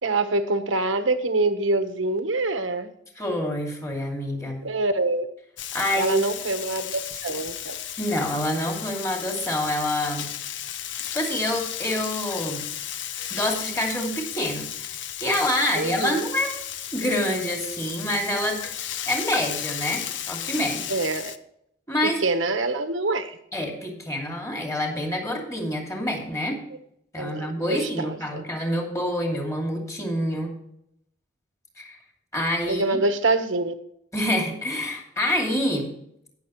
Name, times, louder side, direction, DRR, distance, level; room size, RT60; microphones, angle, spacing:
voice 1, 0.0-2.9 4.6-5.3 6.0-7.8 15.8-16.2 20.9-21.3 22.2-23.4 27.2-27.8 28.3-28.4 32.7-33.7, right 2 dB, 85° right, 9 dB, 1.2 m, -25 dB
voice 2, 3.2-4.6 5.7-6.2 8.0-10.3 11.1-12.6 13.3-16.5 16.9-18.6 19.1-20.0 20.3-20.8 21.9-22.2 23.5-26.6 27.1-30.5 31.8-32.0 32.3-33.0 34.1-35.9, left 1 dB, 15° left, 1 dB, 2.5 m, -27 dB
Frying (food), 5.6-21.4, left 10 dB, 70° left, 0.7 m, -34 dB
18.0 x 6.8 x 3.1 m, 0.74 s
head